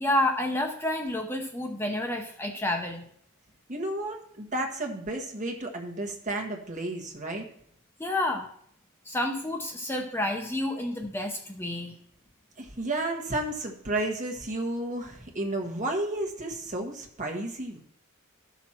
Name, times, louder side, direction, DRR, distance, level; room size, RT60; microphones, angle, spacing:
voice 1, 0.0-3.0 8.0-8.5 9.0-11.9, left 1 dB, 10° left, 3 dB, 0.6 m, -29 dB
voice 2, 3.7-7.4 12.6-17.8, right 2 dB, 35° right, 1 dB, 1.4 m, -32 dB
12.5 x 6.1 x 4.4 m, 0.66 s
head